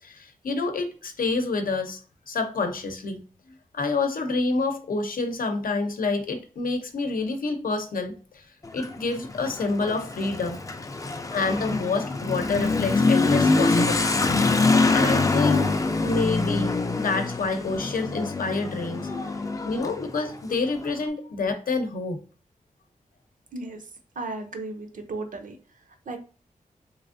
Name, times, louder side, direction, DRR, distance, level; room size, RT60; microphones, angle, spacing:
voice 1, 0.0-2.0 2.3-3.2 3.7-8.4 8.7-10.6 11.3-14.2 14.9-15.6 16.0-19.1 19.6-22.2, left 3 dB, 85° left, 5 dB, 0.7 m, -28 dB
Motorcycle / Accelerating revving vroom, 8.6-21.0, left 3 dB, 25° left, 0.4 m, -24 dB
voice 2, 23.5-26.2, right 2 dB, 70° right, 6 dB, 0.6 m, -36 dB
3.4 x 3.1 x 2.5 m, 0.39 s
wide cardioid pair, 125°, 14 cm